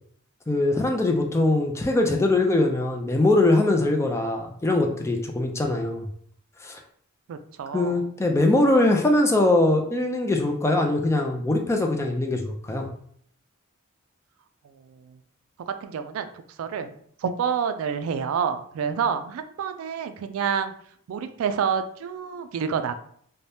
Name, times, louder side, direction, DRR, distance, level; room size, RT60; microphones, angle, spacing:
voice 1, 0.5-6.1 6.6-6.8 7.7-12.9, left 2 dB, 15° left, 3 dB, 0.3 m, -22 dB
voice 2, 7.3-8.1 15.7-16.3 16.6-16.9 17.2-20.7 21.1-22.9, right 7 dB, 70° right, 9 dB, 0.3 m, -28 dB
2.7 x 2.1 x 3.3 m, 0.62 s
head